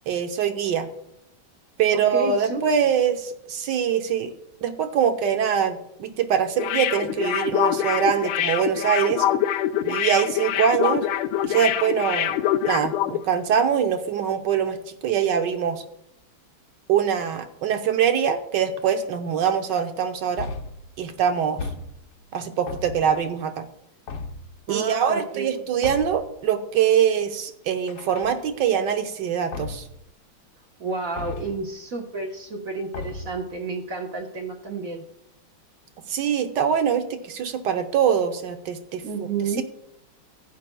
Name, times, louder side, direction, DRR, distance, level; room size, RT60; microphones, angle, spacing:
voice 1, 0.1-0.9 1.8-4.3 4.6-9.3 9.8-11.1 11.4-12.4 12.6-15.8 16.9-20.5 21.0-21.7 22.3-23.7 24.7-29.8 36.1-39.0, right 8 dB, 65° right, 6 dB, 1.5 m, -23 dB
voice 2, 1.9-2.6 24.7-25.7 30.8-35.0 39.0-39.6, right 4 dB, 45° right, 0 dB, 1.5 m, -30 dB
sound 1, 6.6-13.2 13.5-13.6, left 12 dB, 85° left, 1.4 m, -24 dB
sound 2, 20.4-20.9 21.6-22.2 22.7-23.3 24.1-24.6 25.8-26.3 27.9-28.7 29.5-30.0 31.2-31.7 32.9-33.5, left 3 dB, 70° left, 1.5 m, -35 dB
15.5 x 10.0 x 2.3 m, 0.76 s
omnidirectional pair, 2.2 m